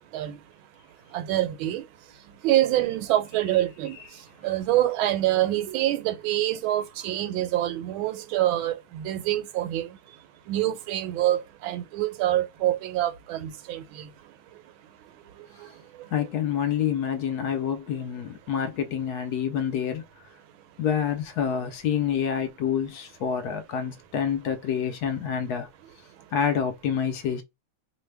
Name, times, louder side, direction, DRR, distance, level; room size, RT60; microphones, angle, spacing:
voice 1, 1.1-1.8 2.4-3.9 4.4-9.9 10.5-13.8, right 14 dB, 85° right, 1.4 m, -25 dB
voice 2, 16.1-20.0 20.8-25.7 26.3-27.4, left 8 dB, 70° left, 0.9 m, -27 dB
3.2 x 2.1 x 3.2 m
omnidirectional pair, 2.2 m